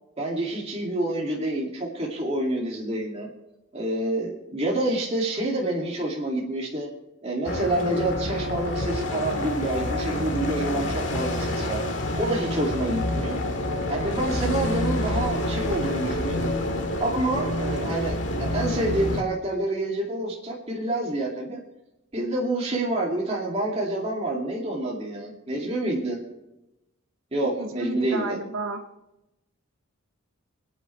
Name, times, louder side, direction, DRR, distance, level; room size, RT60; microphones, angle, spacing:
voice 1, 0.2-3.3 3.7-6.9 7.2-11.8 12.2-13.4 13.9-16.5 17.0-21.6 22.1-26.2 27.3-28.4, right 1 dB, 30° right, -3 dB, 2.4 m, -28 dB
sound 1, 7.4-19.2, left 1 dB, 60° left, 2.0 m, -28 dB
voice 2, 27.6-28.8, right 3 dB, 85° right, 3 dB, 1.8 m, -32 dB
27.0 x 9.2 x 3.3 m, 0.92 s
head